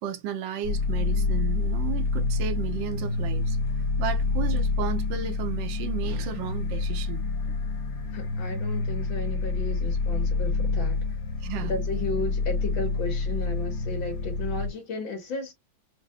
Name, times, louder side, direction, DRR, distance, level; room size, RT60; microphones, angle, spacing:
voice 1, 0.0-3.6 4.0-7.2 11.4-11.7, right 8 dB, 70° right, 1.4 m, -34 dB
sound 1, 0.6-14.7, left 3 dB, 60° left, 1.2 m, -27 dB
voice 2, 1.0-1.5 8.1-11.2 11.6-15.5, left 3 dB, 75° left, 2.1 m, -34 dB
5.2 x 2.2 x 2.7 m
omnidirectional pair, 2.1 m